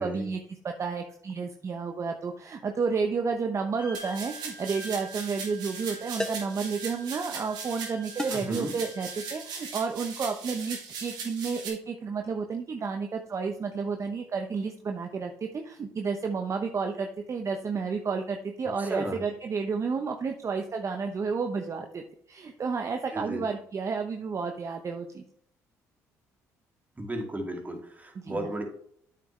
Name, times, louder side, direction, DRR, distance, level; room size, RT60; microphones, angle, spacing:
voice 1, 0.0-25.2 28.1-28.5, right 5 dB, 45° right, 4 dB, 0.9 m, -31 dB
Wind instrument woodwind instrument, 3.8-9.8, right 1 dB, 70° left, 1.8 m, -47 dB
sound 1, 3.9-11.7, right 5 dB, 75° right, 2.3 m, -39 dB
sound 2, 4.6-4.8 6.2-6.6 8.2-8.6, left 1 dB, 10° left, 0.7 m, -35 dB
voice 2, 8.3-8.7 18.8-19.2 23.1-23.4 27.0-28.6, right 1 dB, 20° right, 2 dB, 2.5 m, -34 dB
8.6 x 6.8 x 3.3 m, 0.65 s
supercardioid pair, 60°, 7 cm